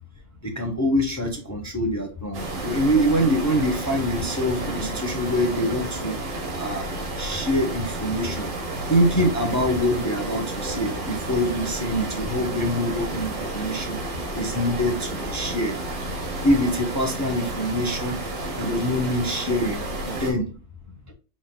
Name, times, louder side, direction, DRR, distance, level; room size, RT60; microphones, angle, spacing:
voice 1, 0.6-6.1 6.6-6.9 7.2-8.5 8.9-14.0 14.3-15.7 16.4-18.2 18.6-20.4, equal, 30° left, 2 dB, 0.3 m, -24 dB
sound 1, 2.3-20.3, right 2 dB, 75° right, 1.8 m, -31 dB
5.3 x 4.0 x 2.2 m, 0.35 s
omnidirectional pair, 1.6 m